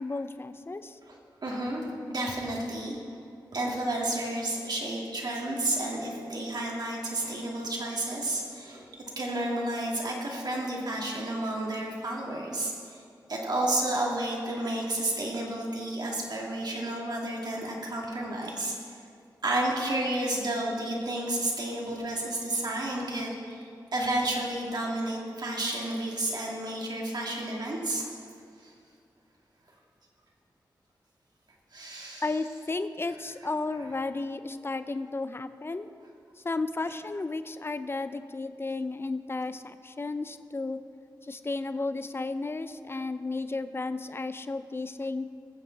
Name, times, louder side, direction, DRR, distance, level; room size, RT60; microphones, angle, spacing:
voice 1, 0.0-1.0 32.2-35.9 36.4-40.8 41.2-45.3, left 3 dB, 30° left, 11 dB, 0.6 m, -33 dB
voice 2, 1.1-1.8 2.1-3.0 3.5-8.8 9.2-13.0 13.3-18.9 19.4-28.1 28.6-28.7 31.7-32.3, right 1 dB, 60° right, -2 dB, 2.6 m, -31 dB
19.0 x 7.6 x 4.1 m, 2.4 s
cardioid pair, 50°, 8 cm